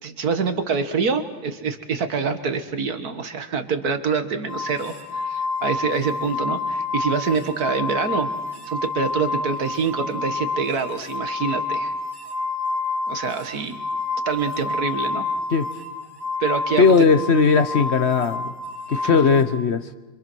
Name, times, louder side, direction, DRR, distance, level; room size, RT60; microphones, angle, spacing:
voice 1, 0.0-8.3 8.7-11.9 13.1-13.8 14.3-15.3 16.4-17.1 19.0-19.2, right 5 dB, 55° right, 9 dB, 1.8 m, -26 dB
sound 1, 4.5-19.4, left 3 dB, 10° right, 1.7 m, -28 dB
voice 2, 16.8-18.5 18.9-19.9, left 5 dB, 50° left, 12 dB, 0.9 m, -18 dB
26.5 x 25.0 x 6.2 m, 1.2 s
omnidirectional pair, 2.0 m